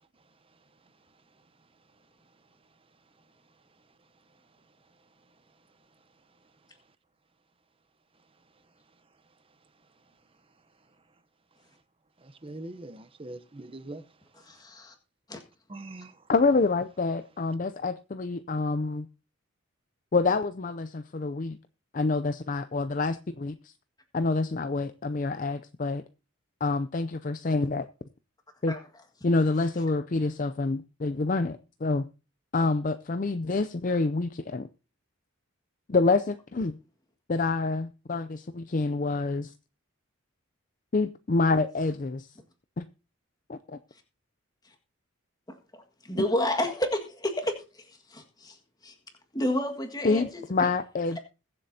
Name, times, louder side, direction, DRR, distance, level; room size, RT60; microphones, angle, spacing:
voice 1, 12.2-14.0 15.7-16.2, right 2 dB, 25° right, 0.8 m, -42 dB
voice 2, 14.4-14.9 15.3-15.4 28.7-28.8 45.5-48.6 48.8-48.9 49.3-50.4, left 1 dB, 20° left, 1.7 m, -31 dB
voice 3, 16.3-19.1 20.1-21.6 21.9-23.7 24.1-26.0 26.6-27.9 28.6-28.8 29.2-32.1 32.5-34.7 35.9-36.8 37.3-39.5 40.9-42.3 42.8-42.9 43.5-43.8 50.0-51.2, left 3 dB, 40° left, 0.4 m, -27 dB
21.5 x 7.7 x 2.8 m
head